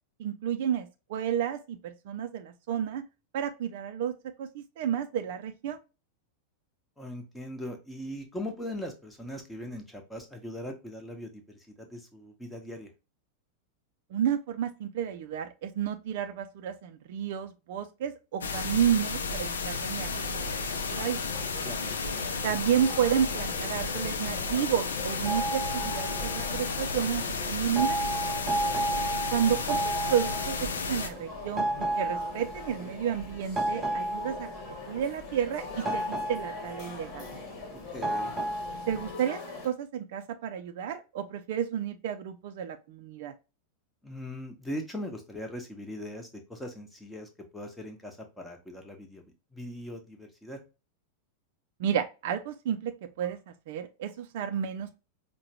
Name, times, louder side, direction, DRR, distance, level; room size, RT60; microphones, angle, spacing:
voice 1, 0.2-3.0 3.3-4.1 4.4-5.8 14.1-21.2 22.4-28.0 29.3-34.5 34.9-37.3 38.9-43.3 51.8-52.9 53.2-53.4 53.7-55.0, right 9 dB, 50° right, 0.4 m, -31 dB
voice 2, 7.0-12.9 21.6-22.0 37.7-38.3 44.0-49.2 49.5-50.6, left 1 dB, 5° left, 0.9 m, -40 dB
sound 1, 18.4-31.1, left 4 dB, 70° left, 0.5 m, -33 dB
sound 2, 20.0-39.7, left 3 dB, 40° left, 1.3 m, -43 dB
sound 3, 22.8-39.1, right 2 dB, 15° right, 0.7 m, -33 dB
4.7 x 2.2 x 2.8 m
figure-of-eight pair, 90°, 0 cm